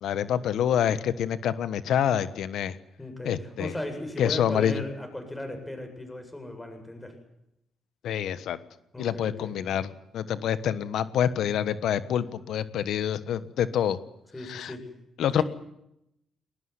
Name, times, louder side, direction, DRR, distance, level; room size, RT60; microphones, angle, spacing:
voice 1, 0.0-2.8 3.2-3.7 4.2-4.8 8.0-8.6 9.0-14.0 14.4-14.7 15.2-15.4, left 9 dB, 75° left, 14 dB, 1.2 m, -27 dB
voice 2, 3.0-7.1 8.9-9.5 14.3-14.8 15.3-15.4, left 1 dB, 10° left, 5 dB, 7.9 m, -36 dB
21.0 x 19.5 x 9.8 m, 0.82 s
cardioid pair, 90°, 0 cm